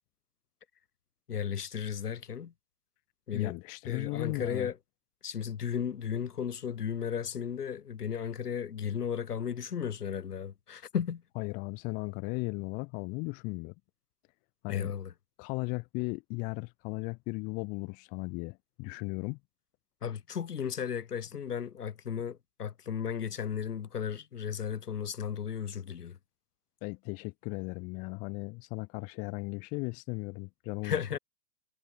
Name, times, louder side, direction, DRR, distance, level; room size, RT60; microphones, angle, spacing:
voice 1, 1.3-2.5 3.3-3.6 3.8-4.8 5.2-11.2 14.7-15.1 20.0-26.2 30.8-31.2, left 8 dB, 70° left, 6.0 m, -35 dB
voice 2, 3.3-4.7 11.3-13.7 14.6-14.9 15.4-19.4 26.8-31.0, left 29 dB, 15° left, 1.7 m, -36 dB
hypercardioid pair, 165°, 48 cm